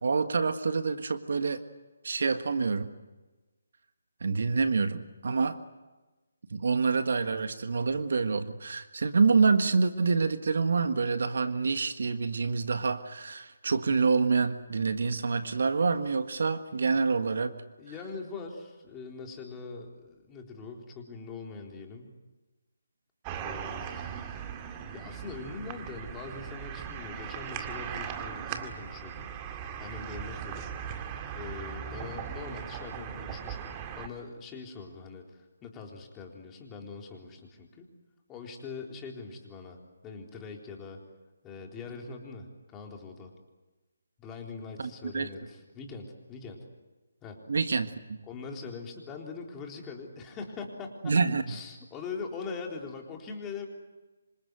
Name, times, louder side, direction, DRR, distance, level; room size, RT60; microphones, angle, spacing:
voice 1, 0.0-1.6 2.0-2.9 4.2-5.6 6.5-17.5 44.8-45.3 47.5-48.2 51.0-51.4, right 4 dB, 60° right, 10 dB, 1.6 m, -27 dB
voice 2, 17.8-22.1 23.4-24.5 24.9-29.3 29.5-30.7 31.3-37.9 38.3-41.0 41.4-43.3 44.2-46.7 47.2-47.4 48.2-51.1 51.5-53.7, left 4 dB, 15° left, 1 dB, 3.8 m, -42 dB
sound 1, 23.2-34.1, right 8 dB, 20° right, 2.1 m, -39 dB
27.0 x 26.0 x 8.0 m, 1.2 s
figure-of-eight pair, 150°, 0 cm